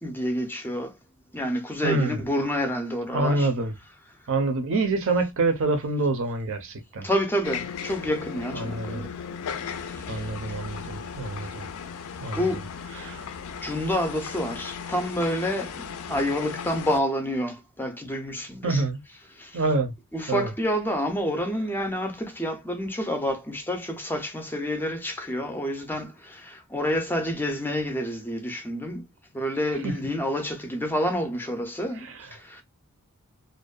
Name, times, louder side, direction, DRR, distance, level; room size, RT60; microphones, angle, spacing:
voice 1, 0.0-0.9 1.3-3.5 7.0-9.1 12.3-12.6 12.9-13.1 13.6-15.7 16.1-18.8 19.4-19.6 20.1-29.0 29.3-32.1 32.5-32.6, equal, 10° left, 0.4 m, -28 dB
voice 2, 1.8-2.2 3.1-3.7 4.3-7.1 8.5-9.0 10.1-11.7 12.2-12.4 13.0-13.3 18.6-19.0 19.5-19.9 20.3-20.5 29.8-29.9 32.0-32.3, right 2 dB, 60° right, 0.6 m, -26 dB
sound 1, 7.4-17.0, left 6 dB, 75° left, 0.4 m, -36 dB
2.6 x 2.1 x 2.2 m
head